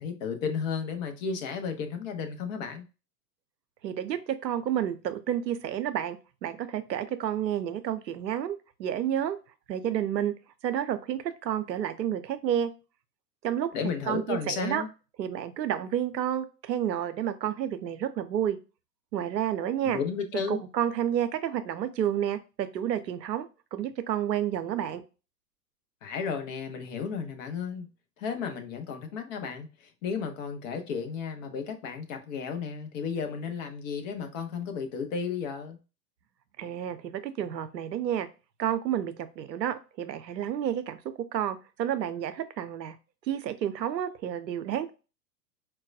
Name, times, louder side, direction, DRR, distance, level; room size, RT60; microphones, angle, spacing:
voice 1, 0.0-2.8 13.7-14.9 19.8-20.6 26.0-27.9 28.2-35.8, left 6 dB, 50° left, 1.0 m, -33 dB
voice 2, 3.8-9.4 9.7-10.3 10.6-12.7 13.4-13.7 14.1-14.8 15.2-18.6 19.1-20.0 20.5-25.0 36.6-38.3 38.6-41.0 41.3-43.0 43.3-44.9, right 10 dB, 85° right, 0.6 m, -30 dB
4.6 x 2.2 x 2.6 m
figure-of-eight pair, 95°, 49 cm